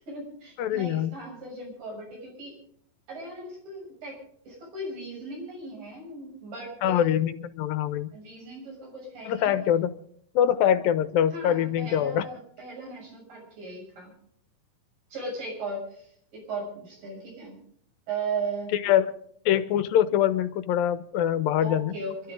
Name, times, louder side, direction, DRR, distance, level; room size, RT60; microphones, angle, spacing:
voice 1, 0.0-2.6 3.1-4.2 4.4-7.2 8.1-9.5 11.3-14.1 15.1-17.6 18.1-18.7 21.6-22.3, right 2 dB, 70° right, -1 dB, 8.4 m, -37 dB
voice 2, 0.6-1.1 6.8-7.3 7.6-8.1 9.3-9.9 10.3-12.2 18.7-19.1 19.5-22.0, left 10 dB, 85° left, 11 dB, 2.7 m, -24 dB
27.0 x 13.0 x 3.7 m, 0.66 s
omnidirectional pair, 4.1 m